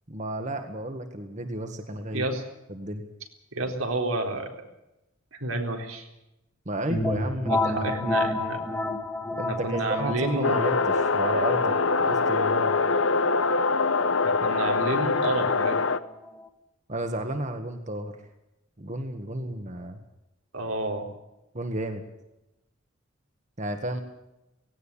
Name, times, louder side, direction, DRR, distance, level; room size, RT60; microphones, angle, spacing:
voice 1, 0.1-2.3 2.7-3.0 6.7-8.1 9.4-12.7 16.9-18.2 18.8-20.0 21.5-22.0 23.6-24.0, right 1 dB, 35° right, 6 dB, 1.8 m, -32 dB
voice 2, 2.1-2.4 3.5-4.5 5.3-6.1 7.5-8.6 9.4-10.5 14.2-15.8 20.5-21.1, right 2 dB, 90° right, 2 dB, 4.1 m, -30 dB
sound 1, 6.9-16.4, left 2 dB, 10° left, 1.8 m, -32 dB
sound 2, 10.4-16.0, left 4 dB, 75° left, 0.9 m, -24 dB
18.0 x 17.5 x 8.7 m, 0.91 s
head